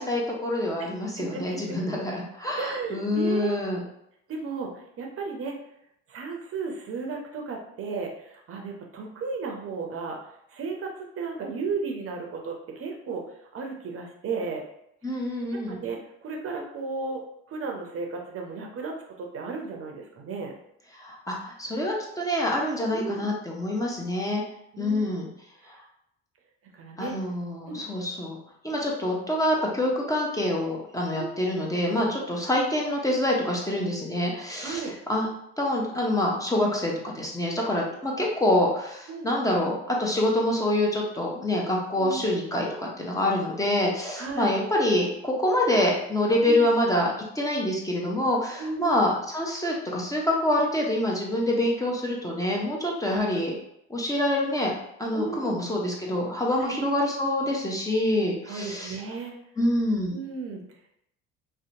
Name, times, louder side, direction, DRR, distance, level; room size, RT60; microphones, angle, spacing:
voice 1, 0.0-3.8 15.0-15.8 21.0-24.4 24.8-25.3 27.0-28.4 28.6-35.3 35.6-53.5 53.9-54.7 55.0-59.0 59.6-60.1, left 1 dB, 10° left, -2 dB, 0.6 m, -26 dB
voice 2, 1.2-1.8 2.5-3.6 4.3-5.5 6.1-10.2 10.5-13.2 13.5-14.6 15.5-17.2 17.5-20.5 22.9-23.3 24.7-25.1 26.7-27.1 27.7-27.8 31.1-31.3 34.6-34.9 39.1-39.3 42.0-42.4 44.2-44.5 46.4-46.7 48.6-49.0 53.1-53.2 55.1-55.6 56.6-56.7 58.5-59.3 60.1-60.6, right 4 dB, 45° right, 1 dB, 0.6 m, -34 dB
2.7 x 2.1 x 2.7 m, 0.76 s
hypercardioid pair, 65°, 31 cm